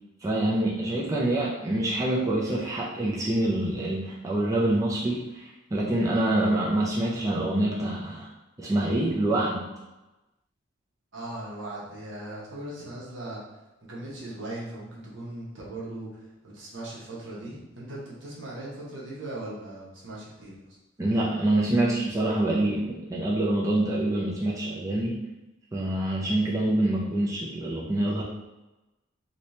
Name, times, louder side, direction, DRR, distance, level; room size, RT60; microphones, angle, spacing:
voice 1, 0.2-8.3 8.6-9.7 21.0-25.2 25.7-28.2, right 1 dB, 15° right, -5 dB, 0.4 m, -26 dB
voice 2, 11.1-13.4 13.8-20.6, right 1 dB, 70° right, -5 dB, 1.0 m, -39 dB
2.9 x 2.8 x 3.1 m, 1.0 s
head